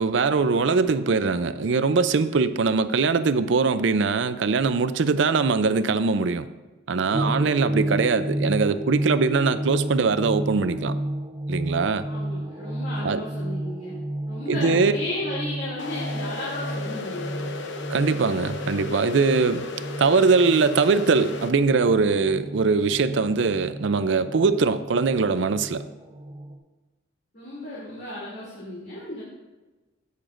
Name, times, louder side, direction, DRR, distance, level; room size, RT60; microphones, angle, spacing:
voice 1, 0.0-6.5 6.9-10.9 11.5-12.1 13.0-13.2 14.5-14.9 17.9-19.7 20.0-25.8, right 4 dB, 70° right, 0.5 m, -22 dB
voice 2, 7.1-7.5 12.0-14.0 14.3-17.5 27.3-29.3, left 1 dB, 50° left, 2.8 m, -34 dB
sound 1, 7.1-26.6, right 1 dB, 30° right, 0.7 m, -32 dB
sound 2, 15.8-21.5, left 3 dB, 70° left, 0.8 m, -35 dB
16.5 x 6.8 x 2.6 m
head